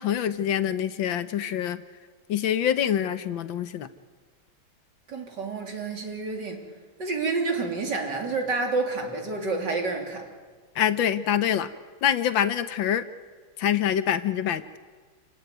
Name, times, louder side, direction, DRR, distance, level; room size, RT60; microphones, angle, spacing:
voice 1, 0.0-1.8 2.3-3.9 10.7-11.7 12.0-13.1 13.6-14.8, left 9 dB, 65° left, 12 dB, 1.6 m, -25 dB
voice 2, 5.1-6.6 7.0-10.2, right 3 dB, 50° right, 2 dB, 3.8 m, -29 dB
28.0 x 17.0 x 9.4 m, 1.5 s
omnidirectional pair, 2.4 m